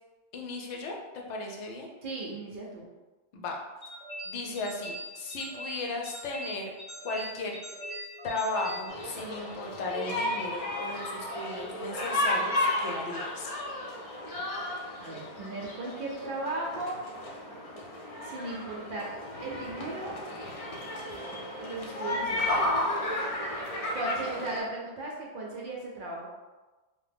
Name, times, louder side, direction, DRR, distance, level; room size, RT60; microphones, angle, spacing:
voice 1, 0.3-0.9 1.3-1.9 3.3-3.6 4.3-6.7 7.0-7.6 8.2-13.5, left 2 dB, 80° left, 0 dB, 0.9 m, -36 dB
voice 2, 2.0-2.9 15.0-17.0 18.2-19.1 19.4-20.2 21.6-22.8 23.9-26.3, right 2 dB, 60° right, -3 dB, 0.6 m, -36 dB
sound 1, 3.8-9.6, right 1 dB, 20° left, 1.4 m, -42 dB
sound 2, 8.9-24.6, left 1 dB, 60° left, 0.3 m, -33 dB
2.7 x 2.1 x 3.4 m, 1.2 s
omnidirectional pair, 1.2 m